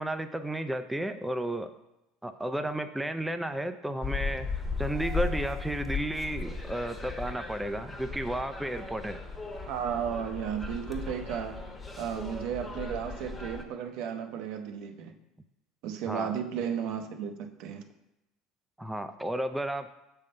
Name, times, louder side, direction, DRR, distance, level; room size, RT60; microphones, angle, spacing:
voice 1, 0.0-1.7 2.2-9.2 16.1-16.3 18.8-19.9, right 1 dB, 5° right, 9 dB, 0.4 m, -33 dB
sound 1, 4.0-13.6, left 4 dB, 15° left, 1.0 m, -36 dB
voice 2, 9.7-11.7 12.0-15.1 15.8-17.8, right 8 dB, 70° right, 6 dB, 0.7 m, -34 dB
6.5 x 3.6 x 5.4 m, 0.90 s
supercardioid pair, 90°, 0 cm